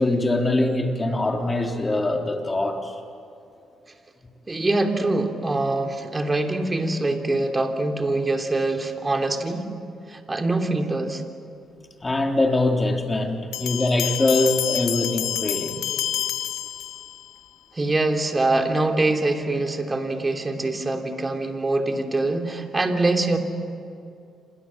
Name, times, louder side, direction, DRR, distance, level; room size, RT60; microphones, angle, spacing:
voice 1, 0.0-2.9 12.0-15.8, left 2 dB, 20° left, 2 dB, 3.7 m, -23 dB
voice 2, 4.5-9.7 10.1-11.2 17.7-23.4, right 2 dB, 20° right, 4 dB, 3.2 m, -24 dB
sound 1, 13.5-17.3, left 12 dB, 90° left, 1.3 m, -28 dB
28.5 x 27.0 x 7.6 m, 2.5 s
cardioid pair, 90°, 0 cm